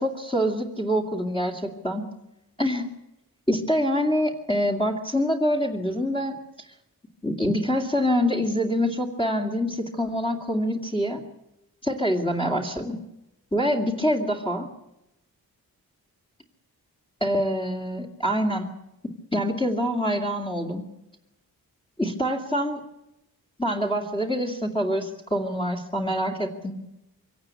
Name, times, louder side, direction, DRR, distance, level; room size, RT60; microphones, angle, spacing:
voice 1, 0.0-2.0 2.6-2.9 3.5-6.4 7.2-11.2 11.8-13.0 13.5-14.7 17.2-18.7 19.3-20.8 22.0-22.8 23.6-26.8, equal, 15° left, -1 dB, 2.4 m, -25 dB
24.5 x 17.5 x 8.3 m, 0.90 s
wide cardioid pair, 140°, 37 cm